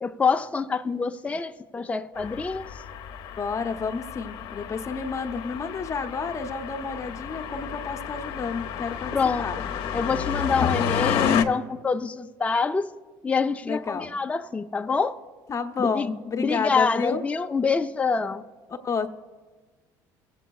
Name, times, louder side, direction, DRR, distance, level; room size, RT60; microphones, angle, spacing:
voice 1, 0.0-2.7 9.1-9.5 9.9-12.9 13.2-15.2 15.8-18.4, left 5 dB, 15° left, 0.4 m, -26 dB
sound 1, 2.2-11.4, left 8 dB, 65° left, 0.7 m, -30 dB
voice 2, 3.4-9.1 9.4-9.6 10.6-10.9 13.6-14.2 15.5-17.2 18.8-19.1, left 5 dB, 35° left, 0.8 m, -30 dB
22.0 x 8.2 x 2.3 m
supercardioid pair, 85°, 9 cm